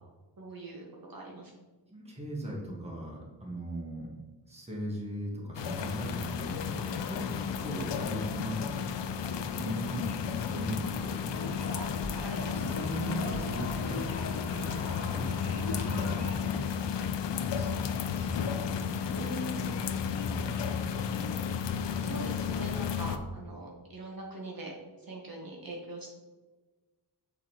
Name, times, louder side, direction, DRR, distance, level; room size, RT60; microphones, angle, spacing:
voice 1, 0.4-1.5 7.9-8.4 12.2-12.5 19.1-20.0 22.0-24.7 25.0-26.1, right 1 dB, 55° right, -1 dB, 1.1 m, -42 dB
voice 2, 1.9-4.2 4.5-7.3 7.6-8.6 9.4-11.2 12.5-16.8 17.3-17.9 18.1-18.5 20.2-20.9, equal, 15° right, -2 dB, 1.3 m, -39 dB
sound 1, 5.5-23.2, left 7 dB, 75° left, 0.6 m, -33 dB
sound 2, 11.3-16.6, left 2 dB, 40° left, 1.7 m, -40 dB
6.6 x 4.9 x 2.9 m, 1.3 s
wide cardioid pair, 135°, 43 cm